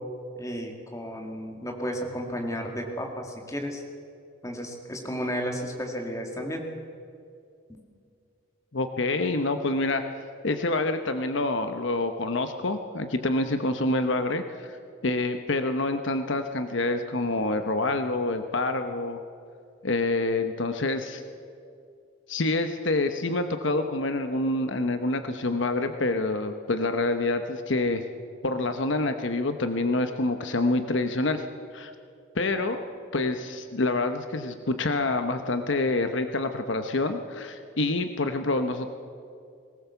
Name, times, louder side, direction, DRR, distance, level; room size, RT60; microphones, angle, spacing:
voice 1, 0.4-3.8 4.4-6.6, equal, 15° left, 2 dB, 2.1 m, -33 dB
voice 2, 8.7-10.0 10.4-14.8 15.0-19.2 19.8-21.2 22.3-28.0 28.4-31.4 31.7-31.9 32.3-32.8 33.1-38.9, left 2 dB, 65° left, 8 dB, 1.0 m, -27 dB
20.5 x 18.0 x 7.0 m, 2.4 s
head